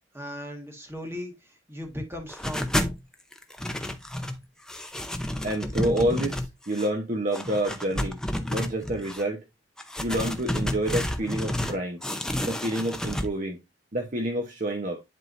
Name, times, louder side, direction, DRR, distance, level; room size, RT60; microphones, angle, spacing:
voice 1, 0.1-2.7, left 1 dB, 10° right, 1.7 m, -37 dB
sound 1, 2.3-3.0 3.3-4.4 4.7-6.9 7.3-9.2 9.8-11.8 12.0-13.3, left 1 dB, 5° left, 0.6 m, -30 dB
voice 2, 5.4-8.2 8.5-9.4 10.0-12.0 12.4-13.6 13.9-15.0, right 1 dB, 40° right, 0.9 m, -28 dB
11.0 x 3.7 x 2.6 m
head